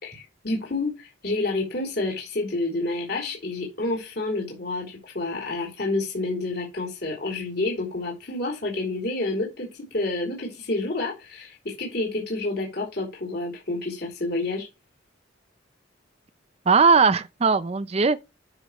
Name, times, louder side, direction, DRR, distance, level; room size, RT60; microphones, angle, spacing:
voice 1, 0.0-14.7, left 2 dB, 55° left, 3.7 m, -29 dB
voice 2, 16.7-18.2, right 5 dB, 30° right, 0.5 m, -19 dB
11.5 x 6.3 x 3.1 m
head